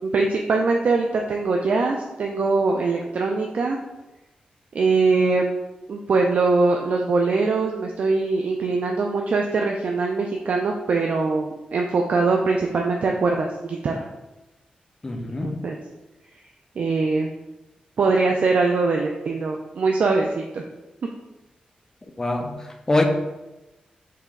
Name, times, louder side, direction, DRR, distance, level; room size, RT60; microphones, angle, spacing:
voice 1, 0.0-3.8 4.7-5.5 5.9-14.1 15.4-15.8 16.8-17.3 18.0-20.6, right 3 dB, 60° right, 1 dB, 0.4 m, -22 dB
voice 2, 15.0-15.6 22.2-23.0, left 2 dB, 20° left, 4 dB, 0.5 m, -24 dB
4.7 x 3.0 x 3.5 m, 1.0 s
wide cardioid pair, 125°, 3 cm